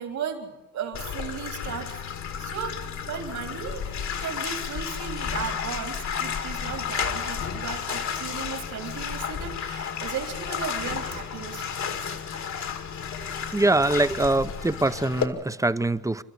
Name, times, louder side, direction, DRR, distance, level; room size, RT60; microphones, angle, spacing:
voice 1, 0.0-1.9 2.4-12.2, right 7 dB, 70° right, 3.6 m, -36 dB
Bathtub (filling or washing), 0.9-15.3, left 7 dB, 65° left, 2.3 m, -32 dB
voice 2, 13.5-16.2, right 2 dB, 10° right, 0.7 m, -23 dB
29.5 x 13.0 x 8.2 m
cardioid pair, 90°, 30 cm